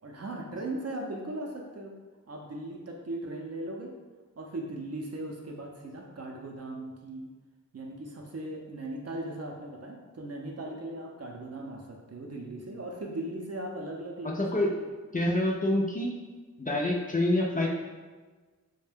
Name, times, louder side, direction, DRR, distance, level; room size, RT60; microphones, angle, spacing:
voice 1, 0.0-1.9 2.3-3.9 4.4-7.3 7.7-14.9, right 1 dB, 50° right, 1 dB, 0.5 m, -38 dB
voice 2, 14.4-14.7 15.1-16.1 16.6-17.7, left 1 dB, 25° left, -2 dB, 0.4 m, -26 dB
2.6 x 2.1 x 3.4 m, 1.3 s
wide cardioid pair, 65°, 32 cm